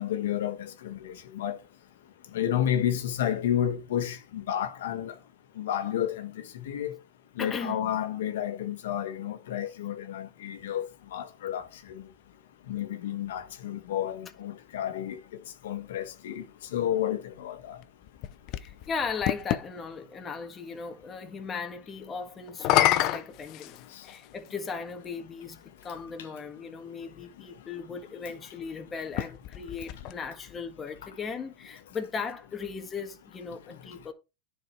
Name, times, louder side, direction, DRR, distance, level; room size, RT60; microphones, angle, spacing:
voice 1, 0.0-1.6 2.3-5.2 5.6-6.9 7.4-12.0 12.7-15.2 15.6-16.4 16.7-17.8, left 10 dB, 80° left, 1.5 m, -31 dB
voice 2, 7.4-7.9 18.5-34.1, left 5 dB, 20° left, 1.6 m, -37 dB
sound 1, 17.8-19.7 22.5-24.3 25.2-25.3 29.0-30.6, left 13 dB, 45° left, 0.7 m, -28 dB
10.5 x 4.9 x 4.6 m
supercardioid pair, 140°, 0 cm